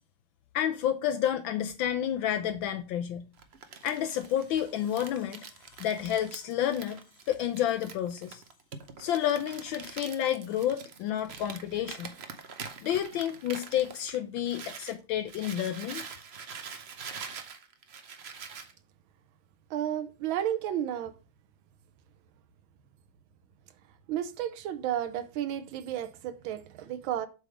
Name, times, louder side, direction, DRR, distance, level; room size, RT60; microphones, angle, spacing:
voice 1, 0.5-3.2 3.8-7.0 7.3-8.4 9.0-12.1 12.8-16.0, left 10 dB, 75° left, 1.4 m, -30 dB
Crumpling crinkling, 3.4-15.0 15.3-18.7, right 6 dB, 55° right, 0.7 m, -45 dB
voice 2, 19.7-21.1 24.1-27.3, right 11 dB, 90° right, 1.5 m, -32 dB
7.9 x 3.5 x 6.2 m
omnidirectional pair, 2.2 m